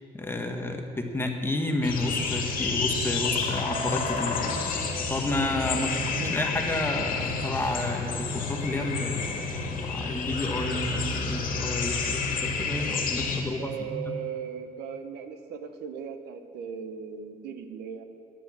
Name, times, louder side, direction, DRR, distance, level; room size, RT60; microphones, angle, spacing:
voice 1, 0.1-0.8 1.1-4.6 5.1-9.5 9.8-14.2, left 2 dB, 15° left, 3 dB, 1.1 m, -31 dB
sound 1, 1.8-13.4, left 4 dB, 55° left, 2.0 m, -30 dB
voice 2, 5.7-6.4 13.6-18.0, right 7 dB, 80° right, 8 dB, 1.0 m, -38 dB
10.0 x 8.3 x 7.4 m, 2.4 s
cardioid pair, 110°, 17 cm